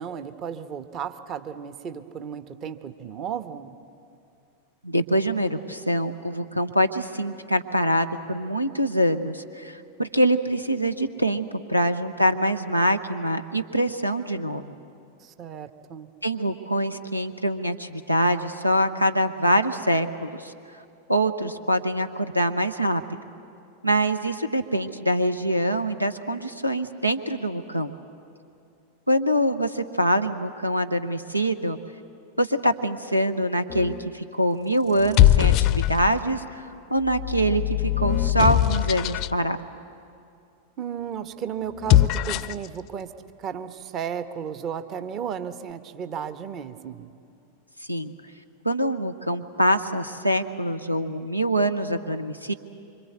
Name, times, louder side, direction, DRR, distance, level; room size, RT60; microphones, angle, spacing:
voice 1, 0.0-3.8 15.2-16.1 40.8-43.1 43.4-47.1, right 8 dB, 35° right, 10 dB, 1.1 m, -34 dB
voice 2, 4.8-14.7 16.2-20.5 21.1-23.0 23.8-27.9 29.1-31.8 32.4-36.6 36.9-39.6 47.9-48.1 48.6-52.5, right 1 dB, 90° right, 10 dB, 0.9 m, -24 dB
sound 1, 33.7-34.1 34.9-36.3 37.0-39.4 41.7-42.7, left 13 dB, 40° left, 0.6 m, -21 dB
25.5 x 25.0 x 8.0 m, 2.5 s
figure-of-eight pair, 90°, 0 cm